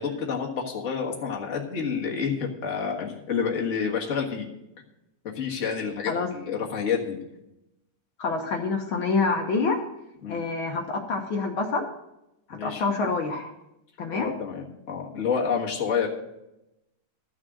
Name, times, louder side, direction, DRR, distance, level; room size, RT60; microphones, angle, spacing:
voice 1, 0.0-4.5 5.3-7.2 10.2-10.4 12.5-12.8 14.1-16.1, left 6 dB, 35° left, -1 dB, 1.3 m, -29 dB
voice 2, 8.2-9.8 10.3-11.8 12.6-13.5 14.0-14.3, left 4 dB, 65° left, 2 dB, 1.3 m, -26 dB
13.0 x 6.3 x 6.1 m, 0.89 s
omnidirectional pair, 3.7 m